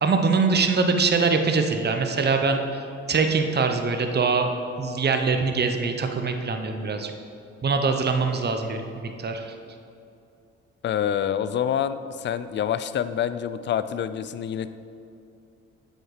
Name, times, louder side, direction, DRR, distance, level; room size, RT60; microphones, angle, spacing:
voice 1, 0.0-2.6 3.1-4.5 4.8-7.1 7.6-9.4, right 4 dB, 30° right, 6 dB, 0.8 m, -23 dB
voice 2, 10.8-14.7, left 9 dB, 35° left, 13 dB, 0.4 m, -27 dB
7.7 x 4.4 x 4.8 m, 2.5 s
hypercardioid pair, 50°, 32 cm